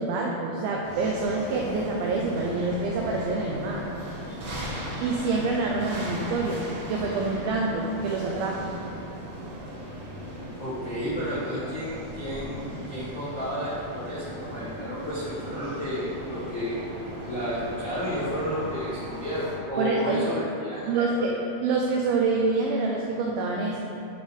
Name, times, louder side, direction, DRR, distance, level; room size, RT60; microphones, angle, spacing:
voice 1, 0.0-3.8 5.0-8.7 19.8-20.3 20.9-21.3 21.6-23.8, right 3 dB, 85° right, -1 dB, 2.1 m, -26 dB
sound 1, 0.8-19.5, equal, 60° right, 1.7 m, -37 dB
voice 2, 10.6-16.7 17.2-21.3, equal, 70° left, -12 dB, 1.0 m, -32 dB
11.0 x 3.7 x 5.1 m, 2.7 s
omnidirectional pair, 5.0 m